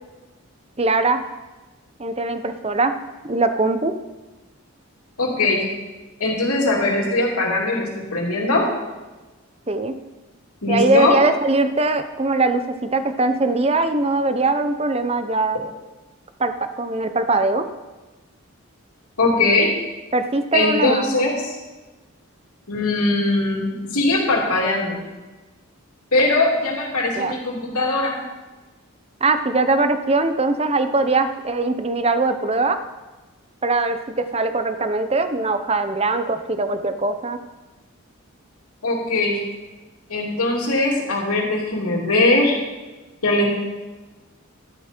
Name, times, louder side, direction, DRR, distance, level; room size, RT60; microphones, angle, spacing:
voice 1, 0.8-1.2 2.0-3.0 3.2-3.9 9.7-10.0 10.7-15.6 16.4-17.7 20.1-21.0 27.2-27.3 29.2-32.8 33.6-37.4, right 2 dB, 25° right, 9 dB, 0.7 m, -21 dB
voice 2, 5.2-5.6 6.2-8.7 10.6-11.1 19.2-19.7 20.5-21.6 22.7-25.0 26.1-28.2 38.8-39.4 40.1-42.6 43.2-43.5, left 2 dB, 90° left, -2 dB, 3.0 m, -20 dB
12.0 x 11.0 x 4.5 m, 1.2 s
head